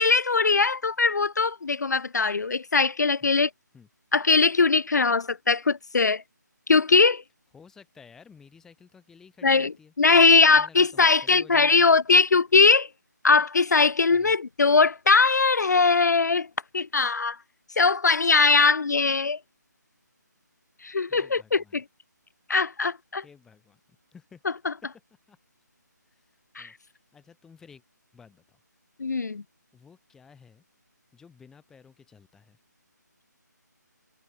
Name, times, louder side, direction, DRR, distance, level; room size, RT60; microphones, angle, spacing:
voice 1, 0.0-3.5 4.1-6.2 6.7-7.2 9.4-9.7 10.0-12.9 13.2-16.5 16.7-17.4 17.8-19.4 20.8-21.8 22.5-23.2 26.6-26.7 29.0-29.4, left 4 dB, 65° left, 1.0 m, -20 dB
voice 2, 7.5-11.9 14.1-14.4 21.1-21.8 23.2-24.4 24.8-24.9 25.3-25.4 26.1-27.8 28.1-28.6 29.7-30.6 31.1-32.6, left 6 dB, 5° left, 4.8 m, -53 dB
figure-of-eight pair, 160°, 10 cm